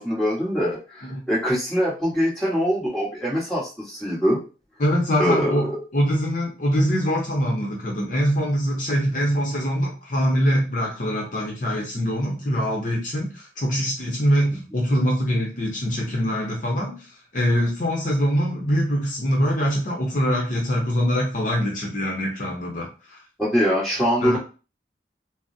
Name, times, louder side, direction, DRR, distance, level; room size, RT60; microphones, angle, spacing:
voice 1, 0.0-4.4 5.2-5.8 23.4-24.4, equal, ahead, -7 dB, 1.2 m, -23 dB
voice 2, 4.8-17.1 17.3-23.2 24.2-24.4, equal, 45° left, -2 dB, 0.7 m, -23 dB
3.8 x 2.0 x 2.6 m, 0.33 s
head